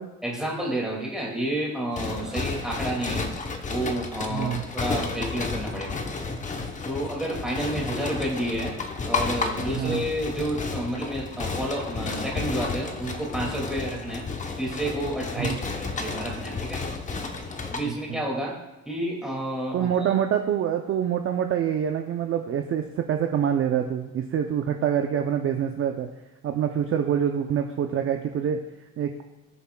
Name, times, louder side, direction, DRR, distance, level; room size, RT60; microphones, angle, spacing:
voice 1, 0.2-3.3 3.7-6.0 6.9-8.7 9.1-14.2 14.6-16.8 17.7-18.5 18.9-20.1, right 1 dB, ahead, -3 dB, 2.1 m, -30 dB
sound 1, 1.9-17.8, left 4 dB, 20° left, 0.8 m, -32 dB
voice 2, 4.3-4.6 9.8-10.0 15.4-15.6 17.8-18.2 19.7-26.1 26.4-28.6 29.0-29.1, right 9 dB, 40° right, 5 dB, 0.5 m, -26 dB
18.5 x 7.0 x 2.2 m, 1.1 s
cardioid pair, 175°, 35 cm